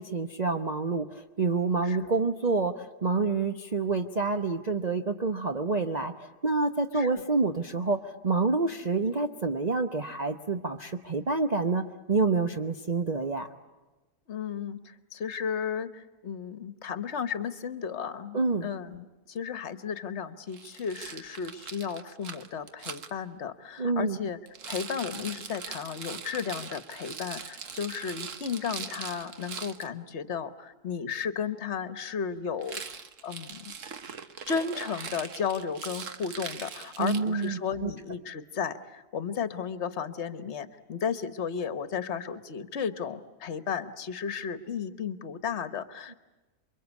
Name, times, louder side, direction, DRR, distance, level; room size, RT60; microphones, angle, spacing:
voice 1, 0.0-13.5 18.3-18.7 23.8-24.2 37.0-37.9, right 3 dB, 30° right, 4 dB, 0.9 m, -28 dB
voice 2, 6.9-7.2 14.3-24.4 24.6-33.0 33.2-33.7 34.5-46.1, left 6 dB, 45° left, 13 dB, 1.4 m, -34 dB
Rattle, 20.5-23.1 24.5-29.9 32.6-37.6, right 6 dB, 55° right, 1.5 m, -41 dB
28.5 x 24.0 x 8.3 m, 1.1 s
omnidirectional pair, 1.7 m